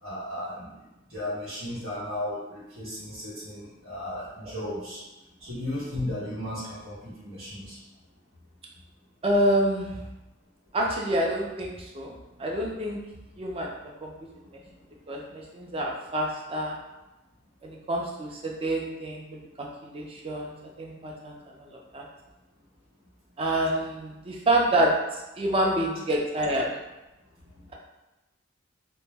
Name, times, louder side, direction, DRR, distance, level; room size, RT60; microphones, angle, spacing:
voice 1, 0.0-0.7 1.1-5.0 5.4-7.8, left 1 dB, 90° right, -12 dB, 1.0 m, -35 dB
voice 2, 9.2-9.9 10.7-13.0 13.4-13.7 14.0-14.1 15.1-16.8 17.6-20.5 20.8-22.0 23.4-24.9 25.4-26.7, right 1 dB, 30° right, -2 dB, 0.4 m, -27 dB
2.1 x 2.1 x 3.3 m, 1.0 s
head